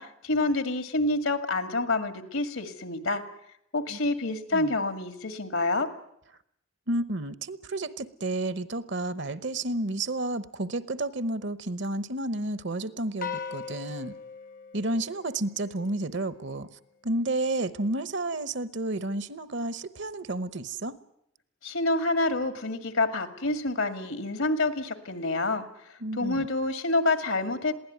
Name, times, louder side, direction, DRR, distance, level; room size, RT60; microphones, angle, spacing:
voice 1, 0.0-3.2 3.7-5.9 21.6-25.6 26.2-27.7, left 2 dB, 80° left, 8 dB, 2.0 m, -27 dB
voice 2, 6.9-14.1 14.7-16.7 17.0-20.9 26.0-26.5, right 2 dB, 60° right, 14 dB, 1.0 m, -31 dB
sound 1, 13.2-15.7, left 6 dB, 40° left, 0.8 m, -39 dB
22.0 x 16.5 x 9.3 m, 0.76 s
head